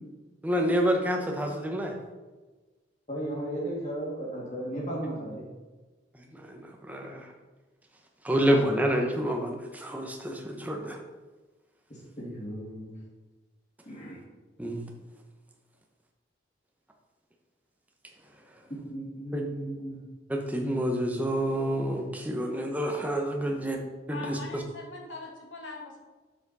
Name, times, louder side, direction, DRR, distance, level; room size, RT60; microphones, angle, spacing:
voice 1, 0.4-1.9 6.5-6.6 6.9-7.2 8.2-11.0 14.6-14.8 19.3-19.4 20.3-23.8 24.1-24.6, equal, 10° right, 2 dB, 0.9 m, -28 dB
voice 2, 3.1-5.4 11.9-12.9 13.9-14.2 18.7-20.0, right 1 dB, 40° left, -4 dB, 2.4 m, -35 dB
voice 3, 24.1-26.0, left 3 dB, 90° left, -1 dB, 1.9 m, -41 dB
7.4 x 6.8 x 4.1 m, 1.3 s
head